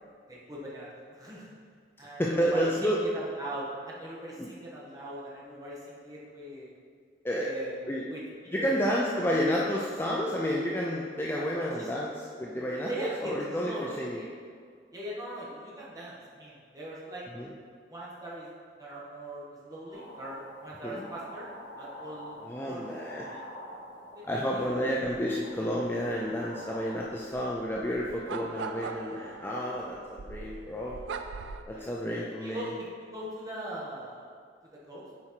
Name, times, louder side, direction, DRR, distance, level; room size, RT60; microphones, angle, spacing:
voice 1, 0.3-1.5 2.0-6.7 7.4-9.1 11.8-11.9 12.8-13.3 13.6-14.3 14.9-17.2 17.9-18.5 18.8-21.5 21.8-22.4 22.6-22.8 23.1-23.2 24.1-24.3 24.5-24.6 31.7-31.9 32.4-34.3 34.9-35.1, right 1 dB, 20° right, -6 dB, 1.4 m, -40 dB
voice 2, 2.2-3.0 4.4-4.5 7.2-7.5 7.9-8.0 8.5-14.2 17.3-17.5 20.8-21.1 22.4-23.4 24.2-31.0 31.7-32.7, equal, 10° left, -4 dB, 0.5 m, -30 dB
sound 1, 19.9-27.0, left 1 dB, 65° left, 1.2 m, -47 dB
sound 2, 25.0-31.6, right 5 dB, 80° right, 0.4 m, -42 dB
7.4 x 4.5 x 4.5 m, 2.1 s
head